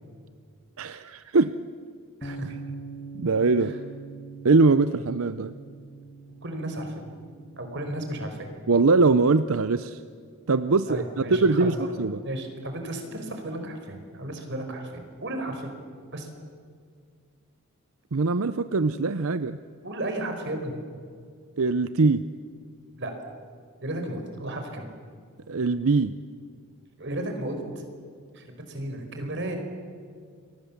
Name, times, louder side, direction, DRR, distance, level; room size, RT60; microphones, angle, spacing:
voice 1, 0.8-1.5 2.3-2.4 3.2-3.7 4.4-5.5 8.7-10.0 10.5-12.2 18.1-19.6 21.6-22.3 25.5-26.1, right 3 dB, 70° right, 13 dB, 0.7 m, -22 dB
Bass guitar, 2.2-8.5, right 4 dB, 25° left, 1.6 m, -43 dB
voice 2, 2.2-2.5 3.6-3.8 6.4-7.0 7.6-8.5 10.9-11.9 12.2-14.9 15.2-15.7 16.1-16.3 19.8-20.7 23.0-23.1 23.8-24.9 27.0-27.6 28.3-29.6, right 1 dB, 55° right, 5 dB, 4.8 m, -33 dB
29.5 x 24.0 x 7.3 m, 2.1 s
head